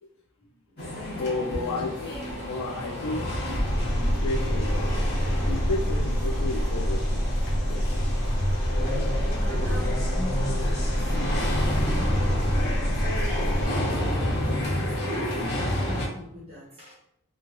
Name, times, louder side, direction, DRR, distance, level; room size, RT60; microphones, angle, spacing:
voice 1, 0.3-1.9 8.8-11.2 11.7-13.1 13.6-16.9, left 1 dB, 25° right, -5 dB, 1.0 m, -41 dB
sound 1, 0.8-16.1, equal, 50° left, 0.8 m, -29 dB
voice 2, 1.2-2.1 2.5-3.4 4.0-4.9 5.2-7.3 7.7-8.1 12.3-12.5 14.2-14.7, left 2 dB, 90° left, 0 dB, 0.4 m, -33 dB
Engine, 3.7-13.7, equal, 5° left, 0.8 m, -27 dB
3.1 x 2.2 x 2.5 m, 0.76 s
head